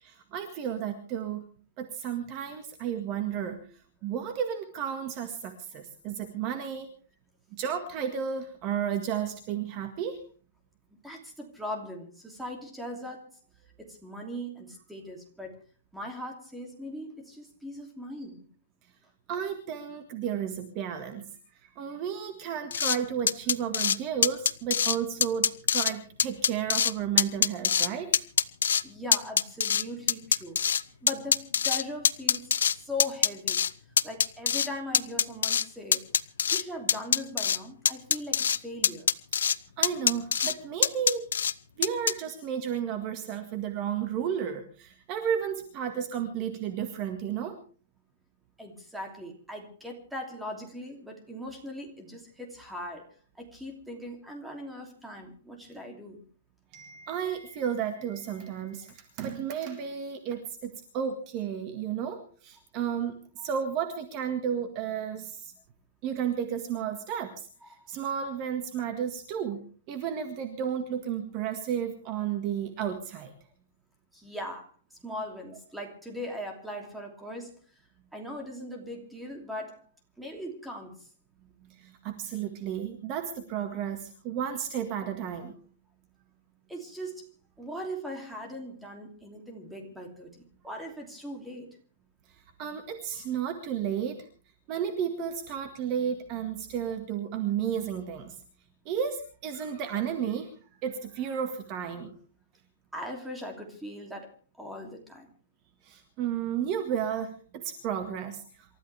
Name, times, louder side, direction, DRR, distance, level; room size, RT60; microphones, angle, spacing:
voice 1, 0.0-1.4 1.8-3.7 4.0-6.9 7.5-10.2 19.3-21.2 21.8-28.1 39.8-41.3 41.8-47.6 56.7-63.2 63.4-65.5 66.0-67.3 67.9-69.6 69.9-73.3 81.8-85.6 92.6-94.2 94.7-98.3 98.9-100.5 100.8-102.2 105.8-108.4, right 8 dB, 30° right, 6 dB, 1.8 m, -32 dB
voice 2, 11.0-13.3 13.8-15.6 15.9-18.5 28.8-30.6 31.0-33.6 34.0-36.1 36.5-39.1 48.6-56.2 63.4-63.5 67.6-67.9 74.1-74.7 75.0-77.5 78.1-79.8 80.2-81.1 86.7-91.8 102.9-104.3 104.6-105.3, left 1 dB, 5° right, 2 dB, 2.9 m, -40 dB
sound 1, 22.7-23.0 23.3-24.0 24.2-25.0 25.2-25.9 26.2-26.9 27.2-27.9 28.1-28.8 29.1-30.8 31.1-32.7 33.0-33.7 34.0-34.7 34.9-35.6 35.9-36.6 36.9-37.6 37.9-38.6 38.8-39.6 39.8-40.5 40.8-41.5 41.8-42.1, left 8 dB, 90° left, 0.8 m, -24 dB
28.0 x 14.0 x 3.4 m, 0.40 s
hypercardioid pair, 165°, 0 cm